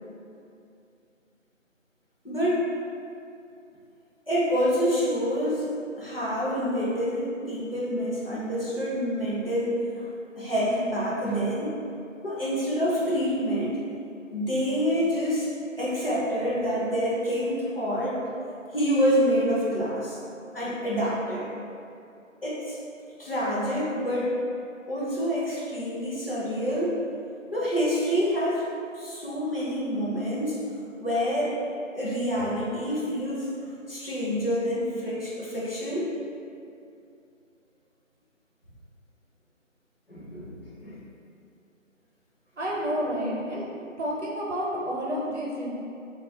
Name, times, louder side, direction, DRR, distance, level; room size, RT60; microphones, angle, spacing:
voice 1, 2.2-2.7 4.3-5.7 6.0-10.1 10.4-11.7 12.2-13.8 14.3-15.5 15.8-18.2 18.7-20.2 20.5-21.5 22.4-22.8 23.2-24.4 24.9-27.0 27.5-28.7 28.9-30.6 31.0-31.6 31.9-33.5 33.9-36.1 40.1-41.0, equal, 45° left, -8 dB, 0.6 m, -27 dB
voice 2, 42.6-43.7 44.0-45.7, equal, 60° right, -4 dB, 0.7 m, -30 dB
2.4 x 2.2 x 3.4 m, 2.6 s
figure-of-eight pair, 170°, 40 cm